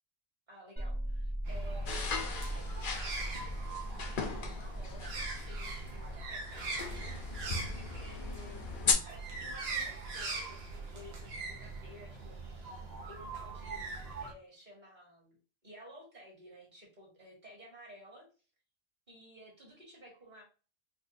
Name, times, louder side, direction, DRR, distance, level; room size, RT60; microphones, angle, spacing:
voice 1, 0.5-12.7 13.1-15.3 15.6-18.3 19.1-20.4, equal, 45° right, -2 dB, 1.6 m, -54 dB
sound 1, 0.8-6.3, right 1 dB, 10° right, 0.7 m, -40 dB
sound 2, 1.5-14.3, right 3 dB, 80° right, 0.9 m, -42 dB
sound 3, 1.9-8.9, left 5 dB, 60° left, 0.8 m, -37 dB
4.2 x 2.4 x 2.5 m, 0.36 s
omnidirectional pair, 1.0 m